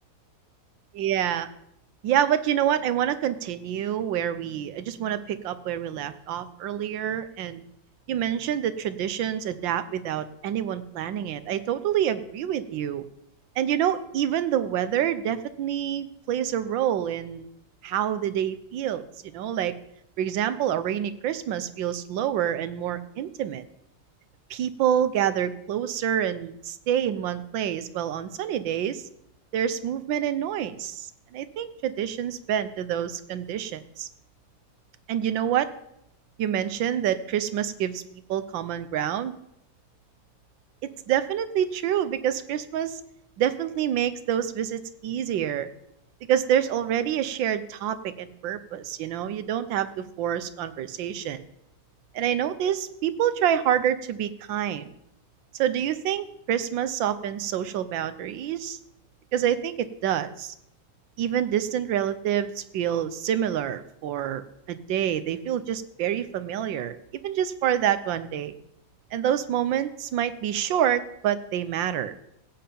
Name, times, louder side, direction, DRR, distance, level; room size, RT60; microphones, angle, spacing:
voice 1, 1.0-1.5 2.0-7.6 8.1-13.0 13.6-17.4 17.8-19.0 19.3-19.7 20.2-23.6 24.5-29.0 29.5-34.1 35.1-35.7 36.4-38.0 38.3-39.3 40.8-43.0 43.4-45.7 46.3-51.4 52.1-54.9 55.6-58.8 59.3-60.5 61.2-67.0 67.2-68.5 69.1-72.1, right 10 dB, 80° right, 12 dB, 1.5 m, -27 dB
16.0 x 5.8 x 8.5 m, 0.77 s
omnidirectional pair, 2.0 m